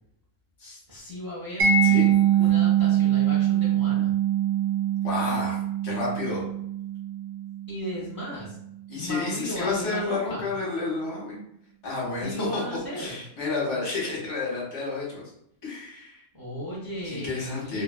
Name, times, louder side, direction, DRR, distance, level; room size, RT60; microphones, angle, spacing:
voice 1, 0.9-1.7 2.4-4.1 7.7-8.6 8.9-10.5 12.2-13.2 16.3-17.8, equal, 25° right, -7 dB, 0.4 m, -35 dB
Mallet percussion, 1.6-8.4, right 9 dB, 80° right, 1.0 m, -23 dB
voice 2, 1.8-2.1 2.4-2.5 5.0-5.6 5.8-6.4 8.9-11.4 11.8-15.2 15.6-16.2 17.0-17.8, left 3 dB, 65° left, -4 dB, 1.2 m, -30 dB
2.6 x 2.2 x 2.3 m, 0.72 s
omnidirectional pair, 1.3 m